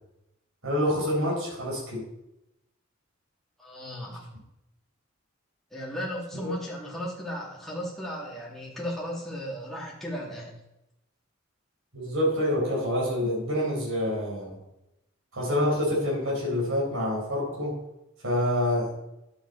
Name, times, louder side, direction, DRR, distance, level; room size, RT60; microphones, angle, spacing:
voice 1, 0.6-2.0 6.4-6.5 11.9-14.6 15.3-17.8 18.2-18.9, left 1 dB, 70° right, -4 dB, 4.5 m, -27 dB
voice 2, 3.6-4.3 5.7-10.6, equal, ahead, -5 dB, 2.6 m, -35 dB
11.5 x 8.1 x 4.1 m, 0.89 s
head